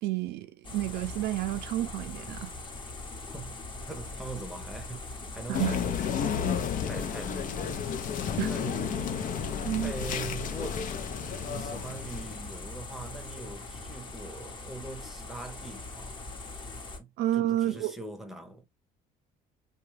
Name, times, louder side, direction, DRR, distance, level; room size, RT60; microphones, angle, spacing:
voice 1, 0.0-2.5 5.5-5.8 8.4-8.5 9.7-9.9 17.2-17.9, right 14 dB, 75° right, 0.5 m, -30 dB
sound 1, 0.6-17.0, left 2 dB, 30° left, 0.8 m, -41 dB
voice 2, 3.9-6.4 6.8-7.9 8.5-10.9 11.4-16.4 17.0-18.6, right 2 dB, ahead, 0.7 m, -42 dB
sound 2, 5.5-12.5, left 7 dB, 55° left, 0.5 m, -32 dB
2.7 x 2.3 x 3.1 m
cardioid pair, 110°, 17 cm